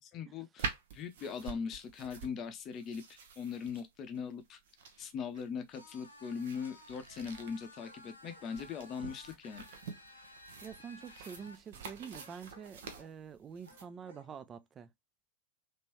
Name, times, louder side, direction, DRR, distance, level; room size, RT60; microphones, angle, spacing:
voice 1, 0.1-3.0 3.4-4.6 5.0-9.6, left 6 dB, 30° left, 0.6 m, -40 dB
sound 1, 0.6-13.9, right 6 dB, 55° right, 0.8 m, -47 dB
sound 2, 5.7-11.6, left 1 dB, 80° left, 0.7 m, -55 dB
sound 3, 7.8-8.5 8.9-9.2 12.1-13.2 13.6-14.3, equal, 85° right, 1.3 m, -60 dB
voice 2, 10.6-14.9, right 7 dB, 25° right, 0.3 m, -47 dB
3.0 x 2.9 x 2.9 m
figure-of-eight pair, 90°, 0 cm